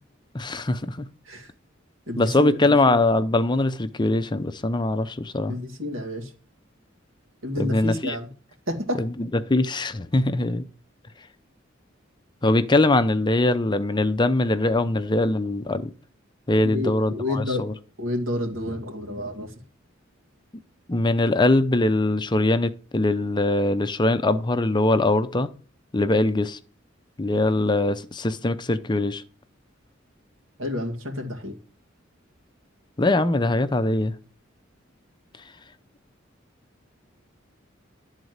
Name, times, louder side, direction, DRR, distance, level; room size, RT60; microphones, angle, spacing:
voice 1, 0.3-1.1 2.2-5.5 7.6-8.2 9.0-9.1 9.4-10.6 12.4-15.9 16.5-17.7 20.9-25.5 25.9-26.6 27.2-29.2 33.0-34.1, left 2 dB, 20° left, 0.6 m, -22 dB
voice 2, 2.1-2.7 5.5-6.3 7.4-8.3 8.7-9.0 16.6-17.7 18.0-19.6 30.6-31.6, left 1 dB, 85° right, 2.2 m, -29 dB
12.0 x 4.0 x 7.9 m
head